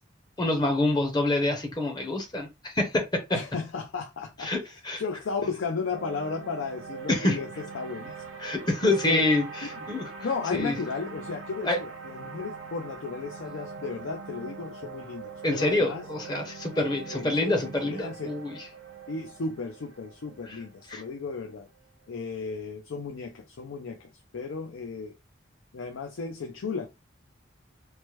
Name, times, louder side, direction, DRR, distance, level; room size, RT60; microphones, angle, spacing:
voice 1, 0.4-3.0 4.4-5.0 7.1-7.4 8.4-10.1 10.5-10.7 11.7-11.8 15.4-18.5 20.9-21.0, left 2 dB, 20° left, 0.6 m, -26 dB
voice 2, 3.3-8.1 8.8-9.2 9.7-9.9 10.2-16.0 16.7-18.3 19.1-21.7 22.1-25.1 25.7-26.9, left 4 dB, 80° left, 0.5 m, -34 dB
sound 1, 5.9-22.2, right 5 dB, 85° right, 0.5 m, -42 dB
3.1 x 2.1 x 3.0 m
head